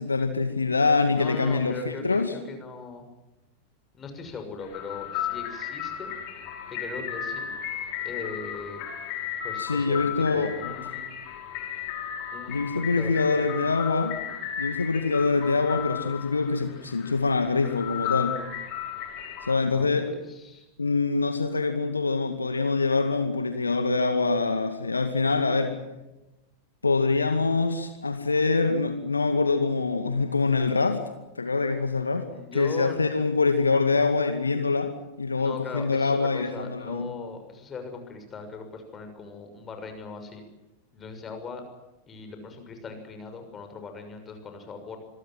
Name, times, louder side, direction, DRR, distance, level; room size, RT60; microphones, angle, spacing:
voice 1, 0.0-2.3 9.6-10.5 12.5-14.2 14.6-18.4 19.5-20.1 20.8-25.8 26.8-31.0 31.4-32.3 32.5-34.9 35.2-37.1, left 4 dB, 80° left, 8 dB, 2.2 m, -24 dB
voice 2, 1.1-3.1 3.9-6.1 6.7-7.5 8.0-8.8 9.4-11.2 12.3-13.5 19.7-20.7 28.3-28.4 32.3-33.2 35.3-40.4 40.9-41.6 42.1-45.0, left 4 dB, 20° left, 6 dB, 6.4 m, -39 dB
sound 1, 4.6-19.5, left 9 dB, 45° left, 5.6 m, -35 dB
26.5 x 22.5 x 7.7 m, 0.97 s
figure-of-eight pair, 90°, 0 cm